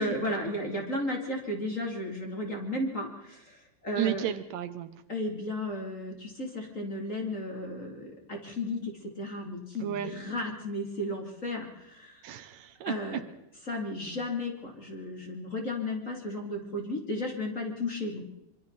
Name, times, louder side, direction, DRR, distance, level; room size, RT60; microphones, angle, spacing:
voice 1, 0.0-4.3 5.1-12.2 12.8-13.2 13.7-18.2, left 1 dB, 20° left, 1 dB, 3.2 m, -34 dB
voice 2, 4.0-4.9 9.8-10.1 12.2-13.2, right 11 dB, 75° right, 11 dB, 2.4 m, -33 dB
26.0 x 24.0 x 4.2 m, 0.88 s
omnidirectional pair, 4.2 m